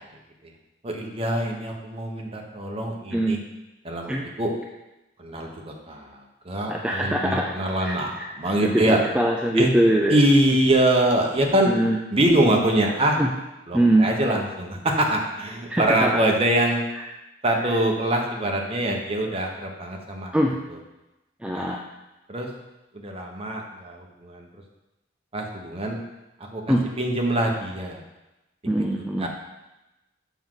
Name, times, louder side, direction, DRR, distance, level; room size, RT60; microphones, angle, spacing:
voice 1, 0.8-3.4 3.8-4.5 5.2-6.2 6.4-9.0 9.5-9.7 10.1-11.7 12.1-13.2 13.7-16.8 17.4-20.4 20.7-20.8 21.5-21.8 22.3-22.5 22.9-24.5 25.3-26.0 26.5-28.0 29.2-29.3, right 1 dB, 30° right, 1 dB, 1.0 m, -24 dB
voice 2, 6.7-7.5 7.8-8.3 8.6-10.2 11.7-12.0 13.2-13.3 13.7-14.1 15.7-16.2 20.3-20.6 21.4-21.8 26.7-26.8 28.7-29.3, right 1 dB, 5° right, 0 dB, 0.4 m, -22 dB
7.1 x 6.0 x 3.8 m, 1.0 s
head